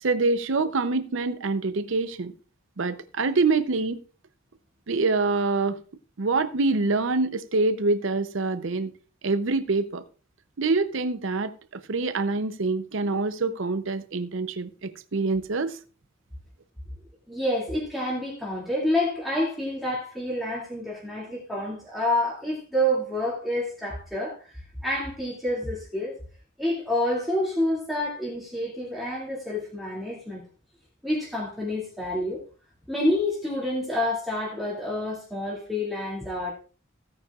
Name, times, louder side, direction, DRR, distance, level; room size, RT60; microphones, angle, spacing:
voice 1, 0.0-2.3 2.8-4.0 4.9-5.8 6.2-8.9 9.2-10.0 10.6-15.8, right 3 dB, 65° right, 0.6 m, -25 dB
voice 2, 17.3-26.2 26.6-30.4 31.0-32.4 32.9-36.6, left 1 dB, ahead, 2.3 m, -28 dB
16.0 x 9.5 x 2.4 m
head